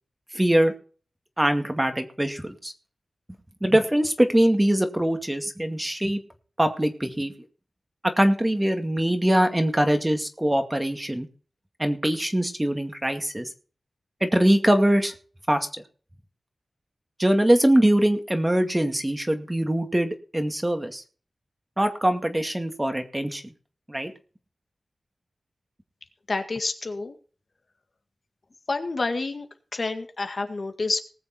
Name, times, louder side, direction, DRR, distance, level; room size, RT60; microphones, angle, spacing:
voice 1, 0.3-0.7 1.4-2.7 3.6-6.2 6.6-7.3 8.0-11.3 11.8-13.5 14.2-15.1 15.5-15.7 17.2-21.0 21.8-23.4 23.9-24.1, right 1 dB, 15° right, 6 dB, 2.2 m, -22 dB
voice 2, 26.3-27.2 28.7-29.5 29.7-31.0, left 3 dB, 60° left, 6 dB, 1.9 m, -28 dB
19.5 x 7.0 x 4.4 m, 0.40 s
wide cardioid pair, 60°, 0 cm